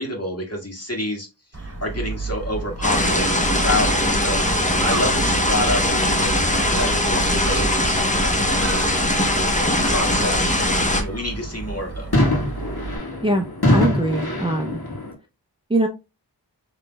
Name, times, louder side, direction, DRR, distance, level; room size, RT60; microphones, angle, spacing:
voice 1, 0.0-4.4 4.7-8.6 9.3-12.3, left 1 dB, 35° left, 1.8 m, -29 dB
Gull seagull, 1.5-13.0, right 3 dB, 35° right, 2.1 m, -32 dB
sound 1, 2.8-11.0, left 1 dB, 15° left, 0.9 m, -20 dB
sound 2, 12.1-15.1, left 1 dB, 60° left, 1.7 m, -22 dB
voice 2, 13.2-14.8 15.7-15.9, right 1 dB, 15° right, 0.6 m, -22 dB
5.9 x 3.2 x 2.3 m
wide cardioid pair, 45°, 42 cm